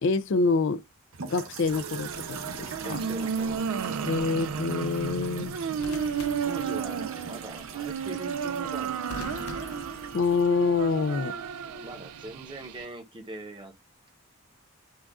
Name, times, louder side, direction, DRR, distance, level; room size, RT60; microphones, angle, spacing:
voice 1, 0.0-0.8 1.2-3.0 4.0-5.6 10.1-11.3, left 4 dB, 55° left, 0.4 m, -26 dB
sound 1, 1.1-11.3, right 5 dB, 65° right, 0.9 m, -43 dB
sound 2, 1.6-12.8, right 6 dB, 85° right, 0.4 m, -33 dB
sound 3, 1.9-2.3 5.8-7.3 9.1-10.8 12.0-12.3, left 3 dB, 90° left, 0.7 m, -44 dB
voice 2, 2.8-4.4 6.4-9.8 11.2-13.7, right 1 dB, 20° right, 0.9 m, -43 dB
6.2 x 2.4 x 3.5 m
head